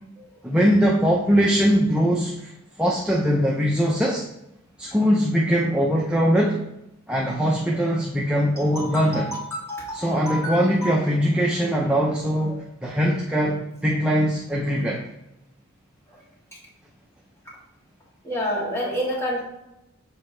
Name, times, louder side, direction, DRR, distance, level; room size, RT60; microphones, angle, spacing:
voice 1, 0.4-2.5 2.8-4.2 4.8-6.6 7.1-9.4 9.9-15.1, equal, 5° right, -3 dB, 0.5 m, -21 dB
voice 2, 8.6-10.9 12.5-12.6 14.7-14.8 18.2-19.4, equal, 10° left, -5 dB, 1.8 m, -29 dB
7.1 x 4.5 x 3.3 m, 0.88 s
head